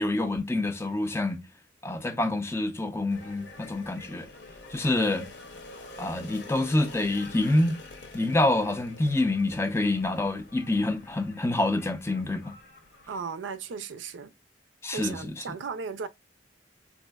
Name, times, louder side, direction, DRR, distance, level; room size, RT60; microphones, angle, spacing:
voice 1, 0.0-1.4 1.8-4.3 4.7-5.3 6.0-7.8 8.1-12.6 14.8-15.4, left 2 dB, 15° left, 0.4 m, -27 dB
sound 1, 3.1-13.2, left 2 dB, 65° left, 0.7 m, -47 dB
voice 2, 13.1-14.3 14.9-16.1, right 5 dB, 85° right, 0.4 m, -36 dB
4.0 x 2.6 x 2.2 m
head